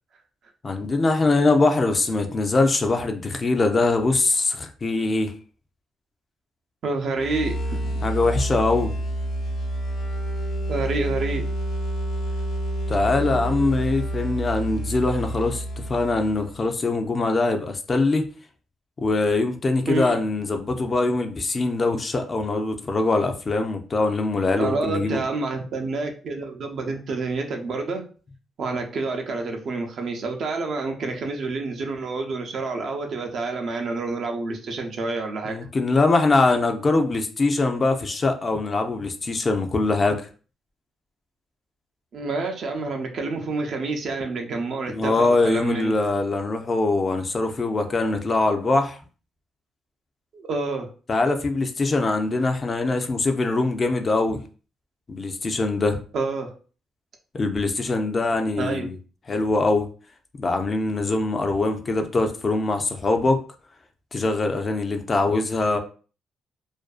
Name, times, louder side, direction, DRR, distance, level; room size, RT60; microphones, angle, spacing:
voice 1, 0.6-5.3 8.0-8.9 12.9-15.6 15.9-18.2 19.0-25.2 35.4-40.2 44.9-49.0 51.1-54.4 55.1-56.0 57.3-59.0 59.3-59.9 60.4-63.4 64.1-65.8, left 3 dB, 35° left, 0.4 m, -22 dB
voice 2, 6.8-8.1 10.7-11.5 19.9-20.2 24.6-28.1 28.6-35.6 42.1-46.0 50.3-50.9 56.1-56.5 58.6-58.9, right 3 dB, 60° right, 0.5 m, -28 dB
sound 1, 7.1-16.7, right 1 dB, 80° left, 0.6 m, -28 dB
2.5 x 2.2 x 2.4 m
cardioid pair, 90°, 0 cm